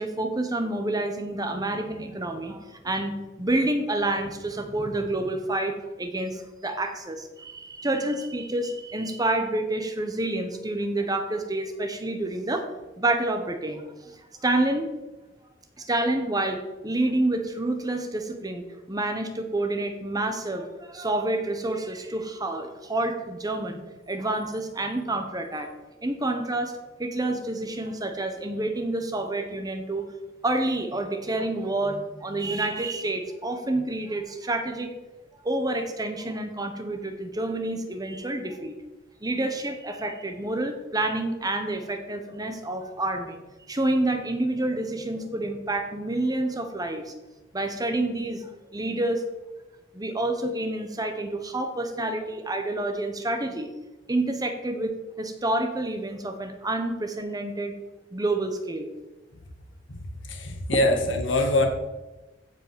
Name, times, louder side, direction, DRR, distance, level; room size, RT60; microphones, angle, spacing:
voice 1, 0.0-12.7 13.0-14.1 14.4-14.9 15.8-25.7 26.0-26.7 27.0-30.1 30.4-34.9 35.4-38.7 39.2-43.4 43.7-47.1 47.5-49.2 49.9-53.7 54.1-57.7 58.1-58.9, right 2 dB, 20° right, 6 dB, 1.2 m, -28 dB
voice 2, 59.9-61.7, left 1 dB, 70° left, 4 dB, 2.1 m, -24 dB
15.5 x 5.3 x 7.0 m, 1.1 s
head